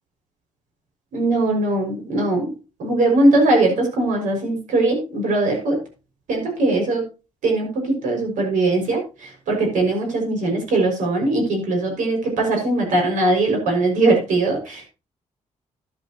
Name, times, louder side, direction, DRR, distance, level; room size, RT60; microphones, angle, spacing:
voice 1, 1.1-2.5 2.8-5.8 6.3-7.0 7.4-9.0 9.5-14.8, right 2 dB, 85° right, 2 dB, 5.9 m, -20 dB
12.0 x 11.5 x 2.9 m, 0.30 s
cardioid pair, 130°, 13 cm